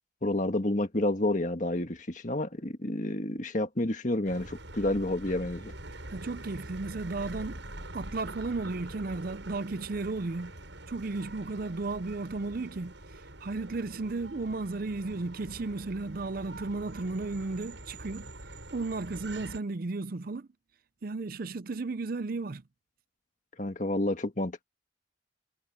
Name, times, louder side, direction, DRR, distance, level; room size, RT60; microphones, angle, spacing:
voice 1, 0.2-5.7 23.6-24.6, left 1 dB, 40° left, 1.7 m, -30 dB
sound 1, 4.2-19.6, right 1 dB, 70° right, 7.4 m, -45 dB
voice 2, 6.1-7.6 7.9-10.5 10.9-12.9 13.4-18.3 18.7-20.5 21.0-22.6, right 3 dB, 50° right, 0.5 m, -34 dB
head